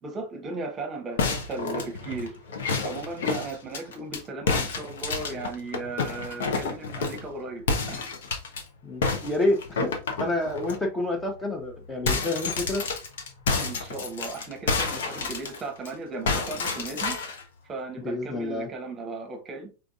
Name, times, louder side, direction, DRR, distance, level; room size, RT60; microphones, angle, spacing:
voice 1, 0.0-2.4 2.8-8.1 13.5-17.2 17.7-19.7, right 3 dB, 25° right, 1.0 m, -36 dB
sound 1, 1.2-4.2 4.5-7.3 7.7-8.6 9.0-10.8 11.2-11.3 11.6-15.9 16.3-17.4, left 4 dB, 60° left, 0.9 m, -29 dB
voice 2, 8.8-12.8 18.0-18.7, left 1 dB, 10° left, 0.9 m, -28 dB
4.9 x 3.5 x 2.4 m
figure-of-eight pair, 90°, 0 cm